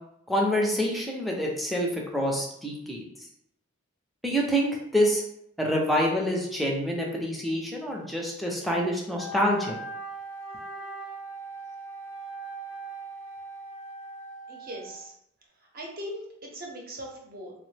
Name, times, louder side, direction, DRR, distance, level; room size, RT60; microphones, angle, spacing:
voice 1, 0.3-3.0 4.2-5.2 5.6-9.8, equal, ahead, -1 dB, 0.4 m, -26 dB
Wind instrument woodwind instrument, 9.1-15.0, right 2 dB, 65° left, 0.5 m, -40 dB
voice 2, 14.5-15.1 15.7-17.5, equal, 45° right, 0 dB, 0.7 m, -39 dB
2.9 x 2.0 x 3.2 m, 0.73 s
head